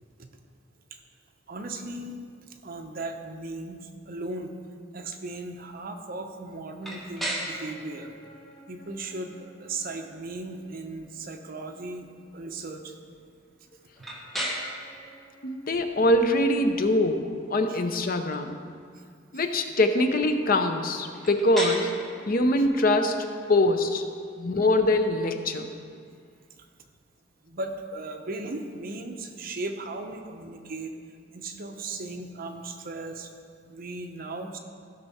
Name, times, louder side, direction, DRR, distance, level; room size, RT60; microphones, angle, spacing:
voice 1, 1.5-2.1 2.5-4.5 4.9-8.1 8.7-12.1 12.3-13.0 17.7-17.8 19.3-19.4 22.6-22.7 27.4-30.9 31.3-33.3 33.7-34.6, right 2 dB, 50° right, 4 dB, 0.8 m, -37 dB
sound 1, 6.8-26.6, equal, ahead, 1.6 m, -40 dB
voice 2, 15.4-18.6 19.3-21.9 22.3-24.0 24.4-25.7, left 1 dB, 50° left, 7 dB, 0.7 m, -23 dB
15.0 x 6.0 x 4.2 m, 2.1 s
head